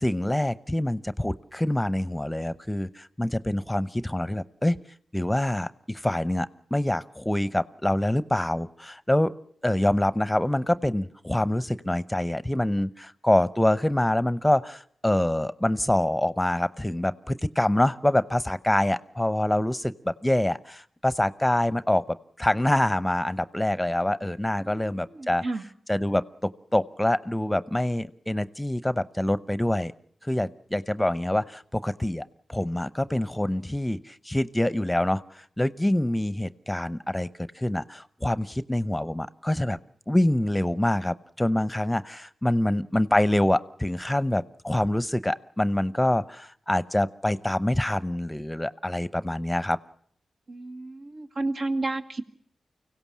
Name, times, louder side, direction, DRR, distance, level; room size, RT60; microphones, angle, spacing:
voice 1, 0.0-4.8 5.1-9.3 9.6-22.0 22.4-25.5 25.9-29.9 30.2-39.8 40.1-49.8, left 1 dB, 10° left, 16 dB, 0.8 m, -25 dB
voice 2, 24.6-25.6 50.5-52.2, right 2 dB, 65° right, 4 dB, 1.7 m, -32 dB
24.5 x 16.5 x 7.4 m, 0.63 s
supercardioid pair, 45°, 0 cm